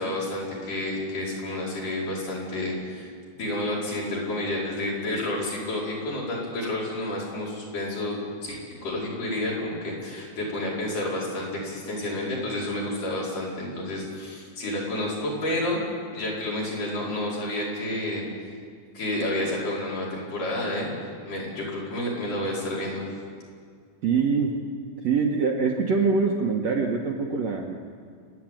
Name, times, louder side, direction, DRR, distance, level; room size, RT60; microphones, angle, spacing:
voice 1, 0.0-15.8 16.1-18.3 18.9-20.9 21.3-23.1, left 1 dB, 60° left, -5 dB, 6.3 m, -30 dB
voice 2, 24.0-24.6 25.0-27.7, right 5 dB, 60° right, 0 dB, 1.9 m, -24 dB
29.0 x 10.5 x 9.1 m, 2.1 s
omnidirectional pair, 4.3 m